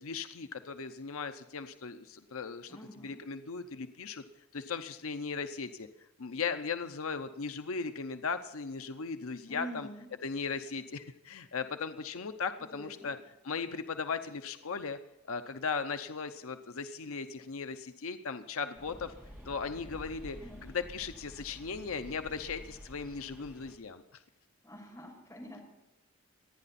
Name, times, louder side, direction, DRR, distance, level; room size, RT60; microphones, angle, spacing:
voice 1, 0.0-4.2 4.5-5.9 6.2-9.9 10.2-13.2 13.4-15.0 15.3-19.1 19.5-20.4 20.6-24.0, left 5 dB, 75° left, 8 dB, 0.7 m, -37 dB
voice 2, 2.7-3.2 9.5-10.1 12.6-13.1 20.4-20.6 24.6-25.6, right 1 dB, 10° left, -4 dB, 6.4 m, -46 dB
sound 1, 18.8-23.8, equal, 10° right, 2.4 m, -50 dB
26.5 x 10.0 x 4.2 m, 0.96 s
head